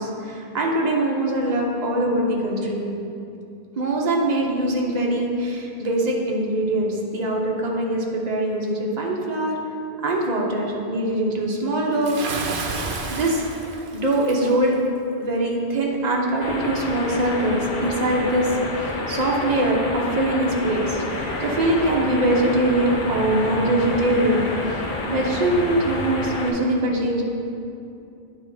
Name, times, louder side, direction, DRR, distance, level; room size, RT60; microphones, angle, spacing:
voice 1, 0.0-2.9 3.8-9.6 10.0-12.2 12.5-12.6 13.1-13.4 13.9-14.8 15.2-24.8 25.1-27.3, right 1 dB, 45° right, -1 dB, 1.0 m, -22 dB
Bathtub (filling or washing) / Splash splatter, 12.0-14.6, right 3 dB, 75° right, 1.0 m, -31 dB
Rocket Take-off Sound, 16.4-26.5, left 2 dB, 55° left, 0.9 m, -30 dB
sound 1, 21.1-26.1, right 1 dB, 20° right, 1.3 m, -36 dB
9.9 x 3.6 x 5.5 m, 2.7 s
omnidirectional pair, 1.1 m